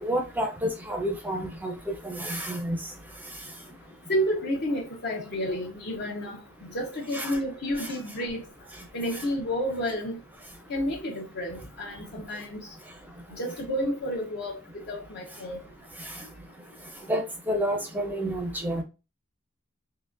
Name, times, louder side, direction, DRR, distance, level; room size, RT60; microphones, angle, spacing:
voice 1, 0.0-2.8 7.1-7.4 17.1-18.8, equal, 10° right, 0.5 m, -29 dB
voice 2, 4.1-6.4 6.7-8.4 8.9-10.2 10.7-12.7 13.3-14.6 14.9-15.6, equal, 50° left, 0.7 m, -30 dB
3.7 x 2.8 x 2.5 m
head